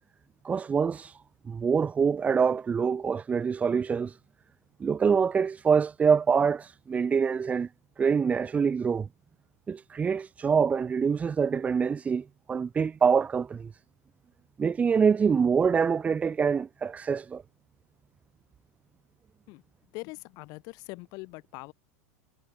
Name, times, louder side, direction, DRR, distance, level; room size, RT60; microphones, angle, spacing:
voice 1, 0.4-1.2 1.5-4.2 4.8-7.7 8.0-9.1 9.7-13.7 14.6-17.4, right 6 dB, 15° right, 0.4 m, -25 dB
voice 2, 19.9-21.7, left 26 dB, 45° left, 1.1 m, -42 dB
figure-of-eight pair, 90°, 9 cm